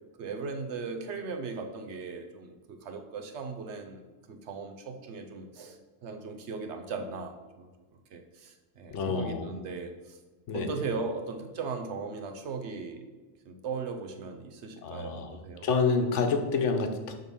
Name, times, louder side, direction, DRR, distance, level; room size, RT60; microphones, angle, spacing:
voice 1, 0.2-4.0 4.3-7.7 8.1-10.2 10.5-13.0 13.4-15.7, right 4 dB, 70° right, 5 dB, 1.0 m, -38 dB
voice 2, 8.9-9.5 10.5-10.7 14.8-17.1, left 4 dB, 80° left, 6 dB, 1.1 m, -28 dB
6.5 x 3.8 x 5.3 m, 1.2 s
omnidirectional pair, 1.2 m